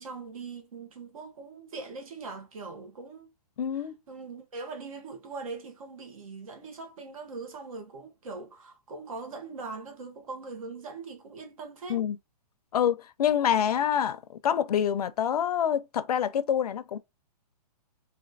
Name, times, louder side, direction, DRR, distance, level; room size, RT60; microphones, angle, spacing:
voice 1, 0.0-3.3 3.7-12.0, right 4 dB, 55° right, 1.3 m, -41 dB
voice 2, 3.6-4.0 11.9-12.2 12.7-17.0, left 9 dB, 70° left, 0.6 m, -26 dB
4.1 x 2.7 x 2.6 m
hypercardioid pair, 175°, 20 cm